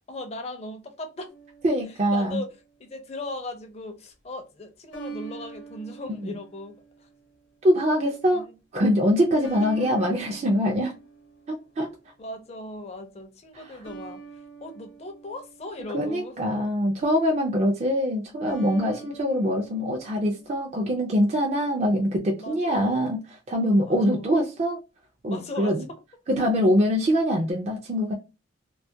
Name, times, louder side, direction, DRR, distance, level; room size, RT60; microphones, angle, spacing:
voice 1, 0.1-1.3 2.1-2.5 2.8-7.1 8.3-8.5 8.8-9.0 9.6-9.7 10.0-10.1 12.2-14.2 14.6-16.3 18.7-19.5 22.4-23.1 23.8-24.4 25.3-26.0, left 2 dB, 35° left, 0.5 m, -38 dB
sound 1, 1.3-2.6 4.9-7.4 9.4-12.0 13.8-16.3 18.5-20.8, right 5 dB, 75° left, 0.8 m, -44 dB
voice 2, 1.6-2.4 6.2-6.3 7.6-8.4 8.7-10.9 11.5-11.9 15.9-23.2 23.5-24.8 25.2-25.8 26.3-28.1, equal, 35° right, 0.4 m, -23 dB
2.3 x 2.1 x 2.6 m
head